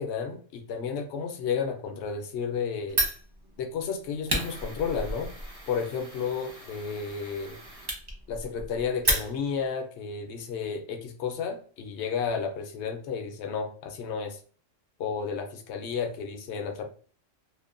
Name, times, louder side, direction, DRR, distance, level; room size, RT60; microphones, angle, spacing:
voice 1, 0.0-3.0 3.6-5.3 5.7-7.6 8.3-14.4 15.0-16.8, left 6 dB, 70° left, 5 dB, 0.8 m, -32 dB
Fire, 2.9-9.7, right 1 dB, 30° right, 0.5 m, -33 dB
2.7 x 2.1 x 2.4 m, 0.42 s
omnidirectional pair, 1.3 m